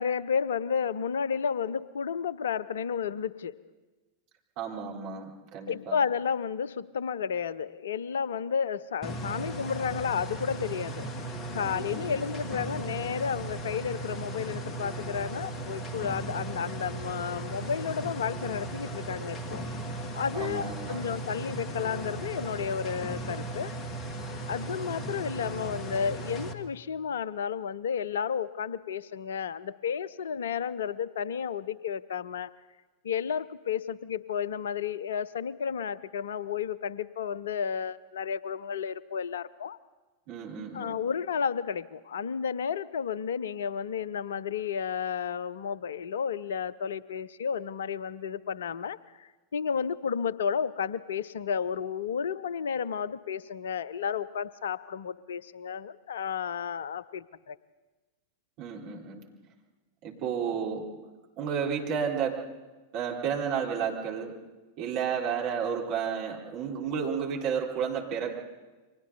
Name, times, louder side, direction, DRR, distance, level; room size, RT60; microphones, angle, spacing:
voice 1, 0.0-3.6 5.7-11.1 11.5-19.6 20.1-23.7 24.5-32.5 33.0-39.8 40.7-57.6, left 7 dB, 65° left, 20 dB, 0.6 m, -32 dB
voice 2, 4.6-5.9 11.6-12.3 20.3-21.1 40.3-41.0 58.6-59.2 60.0-60.8 61.4-62.4 62.9-64.3 64.8-68.3, right 7 dB, 45° right, -1 dB, 4.1 m, -32 dB
sound 1, 9.0-26.5, right 2 dB, 30° left, 1.6 m, -37 dB
29.5 x 24.5 x 4.1 m, 1.2 s
figure-of-eight pair, 90°, 0 cm